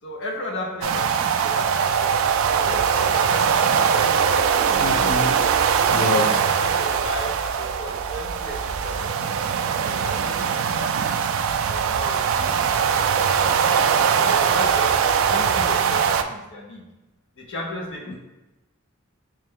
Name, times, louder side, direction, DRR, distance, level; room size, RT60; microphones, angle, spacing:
voice 1, 0.0-5.0 6.2-9.2 9.7-11.1 11.6-13.6 14.1-16.9 17.4-18.1, left 1 dB, 60° left, 1 dB, 0.8 m, -35 dB
sound 1, 0.8-16.2, right 7 dB, 65° right, 0.3 m, -21 dB
voice 2, 4.8-5.4 5.9-6.4, left 2 dB, 40° left, -2 dB, 0.4 m, -26 dB
3.3 x 3.2 x 3.5 m, 1.0 s
head